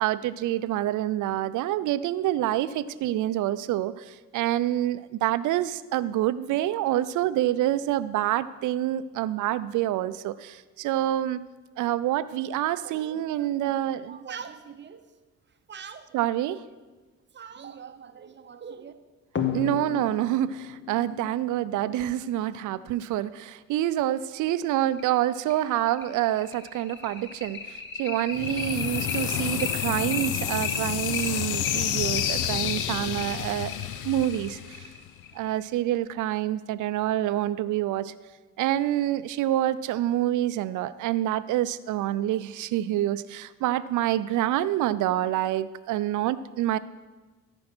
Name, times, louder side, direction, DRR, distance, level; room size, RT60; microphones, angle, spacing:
voice 1, 0.0-11.4 11.8-14.2 16.1-16.6 19.5-33.7 34.0-34.9 35.3-38.1 38.6-46.8, right 13 dB, 80° right, 15 dB, 0.5 m, -27 dB
voice 2, 12.8-15.1 15.7-16.1 17.3-18.9, right 7 dB, 35° right, 10 dB, 0.7 m, -43 dB
sound 1, 19.3-22.5 24.0-24.1 24.5-24.6 25.0-25.1 25.5-35.5, left 5 dB, 40° left, 1.2 m, -34 dB
sound 2, 28.3-35.2, left 12 dB, 85° left, 0.6 m, -30 dB
13.5 x 5.3 x 6.1 m, 1.3 s
cardioid pair, 90°, 30 cm